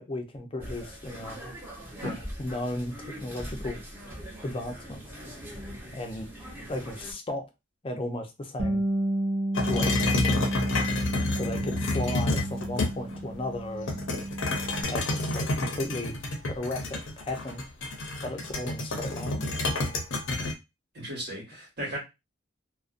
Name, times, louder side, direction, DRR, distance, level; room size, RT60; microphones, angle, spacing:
voice 1, 0.0-1.4 2.0-3.8 4.4-5.0 5.9-6.3 6.7-7.5 7.8-8.8 9.7-9.9 11.3-14.0 14.8-16.2 16.6-17.6 18.2-19.5, left 1 dB, 30° left, 0.5 m, -35 dB
sound 1, 0.6-7.1, equal, 10° right, 0.7 m, -42 dB
Bass guitar, 8.6-14.8, right 1 dB, 90° right, 0.8 m, -31 dB
sound 2, 9.5-13.2 13.9-20.5, left 2 dB, 75° left, 0.6 m, -29 dB
voice 2, 20.9-22.0, equal, 60° right, 1.2 m, -35 dB
2.5 x 2.1 x 2.4 m
head